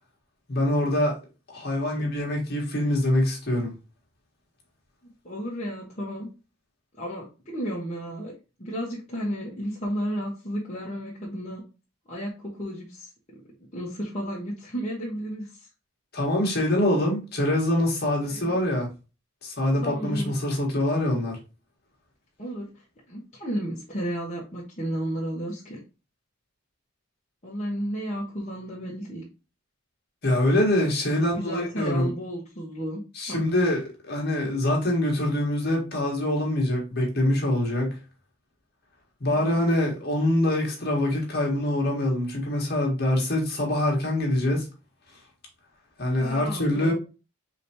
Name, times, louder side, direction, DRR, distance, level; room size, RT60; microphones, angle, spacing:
voice 1, 0.5-1.2 1.5-3.7 16.1-18.9 19.4-21.4 30.2-32.1 33.1-38.0 39.2-44.7 46.0-46.9, left 1 dB, 45° left, 1.8 m, -24 dB
voice 2, 5.2-6.3 7.0-8.3 8.6-11.6 12.1-13.4 13.7-15.5 18.3-18.6 19.8-20.3 22.4-22.7 23.1-25.8 27.4-29.2 31.1-33.0 33.3-33.4 39.3-39.6 46.2-46.9, equal, 30° left, 1.3 m, -33 dB
4.8 x 3.5 x 2.9 m
head